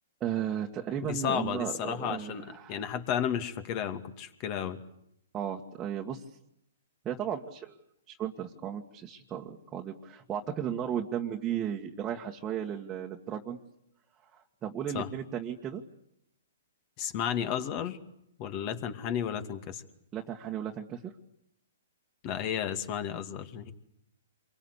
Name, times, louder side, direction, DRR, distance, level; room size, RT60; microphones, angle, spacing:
voice 1, 0.2-2.9 5.3-6.2 7.0-7.7 8.1-13.6 14.6-15.8 20.1-21.1, right 9 dB, 20° right, 0 dB, 1.8 m, -35 dB
voice 2, 1.0-4.8 14.9-15.1 17.0-18.0 18.4-19.8 22.2-23.7, left 9 dB, 35° left, 8 dB, 2.5 m, -33 dB
28.0 x 23.5 x 8.3 m, 0.75 s
hypercardioid pair, 130°, 0 cm